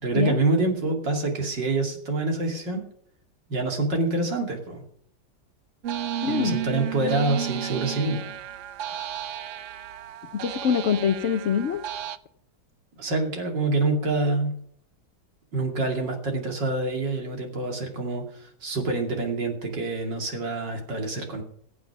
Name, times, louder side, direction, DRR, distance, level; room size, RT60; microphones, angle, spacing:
voice 1, 0.0-2.8 3.5-4.8 6.3-8.2 13.0-14.5 15.5-21.4, right 2 dB, 65° right, 2 dB, 3.3 m, -26 dB
sound 1, 5.8-12.2, right 11 dB, 85° right, 0.6 m, -33 dB
voice 2, 6.2-6.6 10.3-11.8, left 7 dB, 65° left, 9 dB, 0.7 m, -24 dB
14.5 x 9.2 x 6.0 m, 0.62 s
omnidirectional pair, 2.1 m